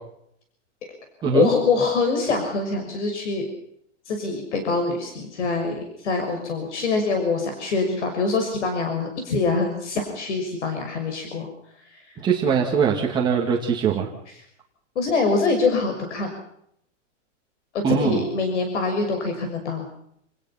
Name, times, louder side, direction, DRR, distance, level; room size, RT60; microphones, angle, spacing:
voice 1, 1.3-3.5 4.1-11.5 11.9-12.0 14.3-14.4 14.9-16.3 17.7-19.8, left 4 dB, 70° left, 5 dB, 6.4 m, -24 dB
voice 2, 12.2-14.1 17.8-18.2, right 6 dB, 10° right, -2 dB, 2.2 m, -21 dB
29.0 x 19.0 x 5.9 m, 0.73 s
supercardioid pair, 180°, 36 cm